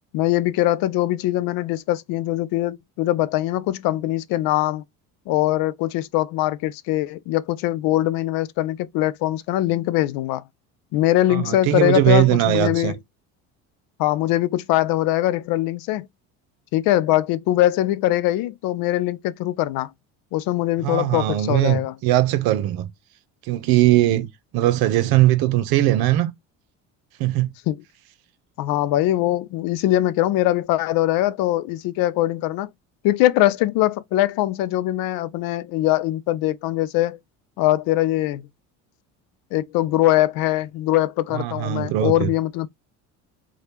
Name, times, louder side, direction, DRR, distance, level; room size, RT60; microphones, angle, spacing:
voice 1, 0.1-4.8 5.3-10.4 10.9-13.0 14.0-16.1 16.7-19.9 20.3-21.9 27.7-27.8 28.6-32.7 33.0-37.2 37.6-38.4 39.5-42.7, left 15 dB, 65° left, 0.5 m, -22 dB
voice 2, 11.3-12.9 20.8-22.9 23.5-24.3 24.5-26.3 27.2-27.5 41.3-42.3, right 15 dB, 70° right, 0.8 m, -20 dB
3.3 x 2.3 x 2.8 m
supercardioid pair, 95°, 38 cm